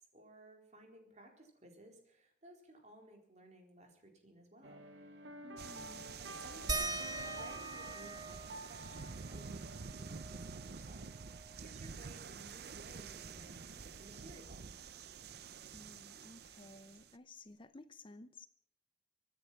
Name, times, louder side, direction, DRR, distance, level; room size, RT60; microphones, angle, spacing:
voice 1, 0.1-4.8 5.8-14.7, right 1 dB, 40° right, 2 dB, 4.2 m, -58 dB
sound 1, 4.6-10.9, right 1 dB, 80° right, 2.2 m, -51 dB
voice 2, 5.4-6.2 15.7-18.5, left 2 dB, 30° left, 12 dB, 0.7 m, -55 dB
sound 2, 5.6-17.1, right 5 dB, 60° right, 0.7 m, -49 dB
sound 3, 6.7-11.8 12.2-12.3 12.6-14.4 15.6-15.7 16.4-16.5, right 3 dB, 25° right, 1.3 m, -44 dB
24.5 x 10.0 x 5.7 m, 0.66 s
head